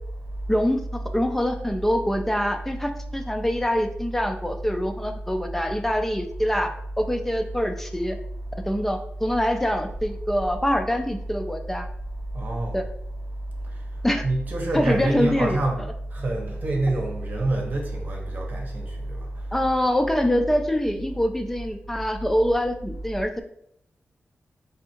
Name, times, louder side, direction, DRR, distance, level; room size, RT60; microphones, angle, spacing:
voice 1, 0.5-0.8 1.1-6.7 7.0-8.2 8.7-11.9 12.7-12.8 14.0-14.2 14.7-15.6 19.5-23.4, equal, 5° left, 0.4 m, -24 dB
voice 2, 12.3-12.7 14.2-19.2, right 2 dB, 50° right, 1.0 m, -26 dB
3.5 x 2.6 x 4.4 m
wide cardioid pair, 155°, 4 cm